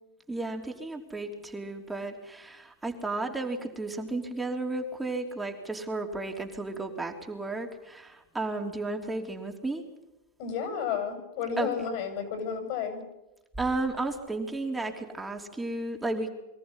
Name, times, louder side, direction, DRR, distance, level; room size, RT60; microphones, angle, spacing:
voice 1, 0.3-9.8 11.6-11.8 13.6-16.3, right 2 dB, 10° right, 2 dB, 3.1 m, -33 dB
voice 2, 10.4-13.0, left 7 dB, 60° left, 7 dB, 7.5 m, -32 dB
23.5 x 14.0 x 9.9 m, 0.97 s
hypercardioid pair, 110°, 0 cm